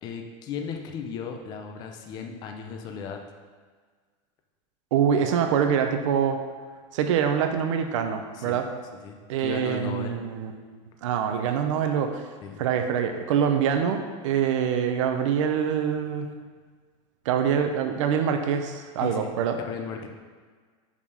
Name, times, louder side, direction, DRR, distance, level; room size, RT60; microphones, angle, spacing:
voice 1, 0.0-3.2 8.3-8.6 9.0-10.2 12.4-12.6 19.0-19.3 19.7-20.1, left 6 dB, 25° left, 4 dB, 0.6 m, -36 dB
voice 2, 4.9-6.4 6.9-8.7 9.3-10.5 11.0-12.2 12.6-16.3 17.3-19.6, right 8 dB, 75° right, 6 dB, 0.8 m, -25 dB
5.4 x 5.0 x 5.5 m, 1.5 s
supercardioid pair, 175°, 16 cm